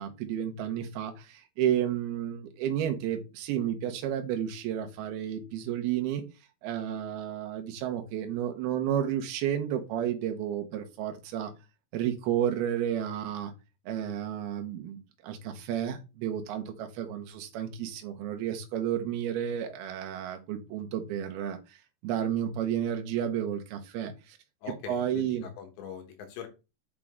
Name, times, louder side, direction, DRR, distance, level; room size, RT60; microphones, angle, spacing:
voice 1, 0.0-6.2 6.6-11.5 11.9-13.5 13.9-21.8 22.0-24.4 24.9-25.5, right 10 dB, 70° right, 5 dB, 2.8 m, -31 dB
voice 2, 24.6-26.5, left 7 dB, 75° left, 5 dB, 3.5 m, -42 dB
7.6 x 5.6 x 3.7 m, 0.28 s
omnidirectional pair, 5.3 m